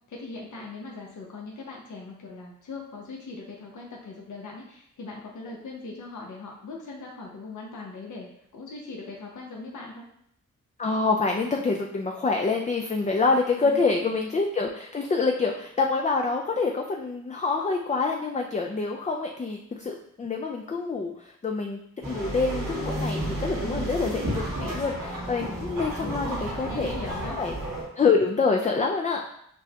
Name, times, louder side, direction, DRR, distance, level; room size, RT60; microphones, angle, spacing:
voice 1, 0.1-10.0 13.6-14.0 23.5-24.0 26.0-27.4, left 2 dB, 65° left, -2 dB, 0.8 m, -40 dB
voice 2, 10.8-21.8 22.0-26.9 27.4-27.5 28.0-29.2, left 4 dB, 25° left, 1 dB, 0.4 m, -26 dB
sound 1, 22.0-27.8, right 1 dB, 90° right, 1.3 m, -32 dB
6.1 x 2.2 x 2.8 m, 0.71 s
cardioid pair, 55°, 32 cm